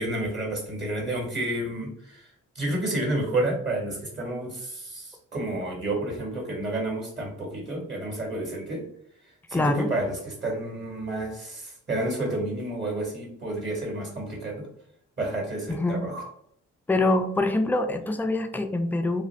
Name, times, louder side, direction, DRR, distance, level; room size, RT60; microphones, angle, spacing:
voice 1, 0.0-2.3 2.5-8.8 9.5-14.7 15.2-16.3, right 1 dB, 35° right, -1 dB, 1.3 m, -30 dB
voice 2, 9.5-9.9 15.7-16.0 16.9-19.2, left 2 dB, 5° left, 6 dB, 0.3 m, -25 dB
2.4 x 2.4 x 3.2 m, 0.69 s
supercardioid pair, 50°, 32 cm